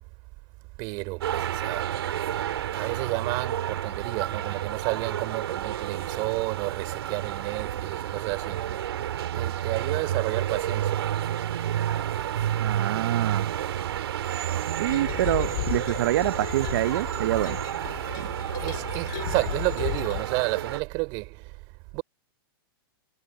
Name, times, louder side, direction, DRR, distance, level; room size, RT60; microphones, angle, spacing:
voice 1, 0.8-1.9 2.7-8.8 9.3-11.1 18.6-21.4 21.9-22.0, right 27 dB, 35° right, 3.6 m, -31 dB
sound 1, 1.2-20.8, right 11 dB, 80° right, 2.5 m, -30 dB
voice 2, 12.6-13.5 14.8-17.6 18.2-18.3, right 14 dB, 60° right, 0.6 m, -26 dB
sound 2, 14.8-20.2, left 17 dB, 55° left, 5.1 m, -35 dB
hypercardioid pair, 155°, 13 cm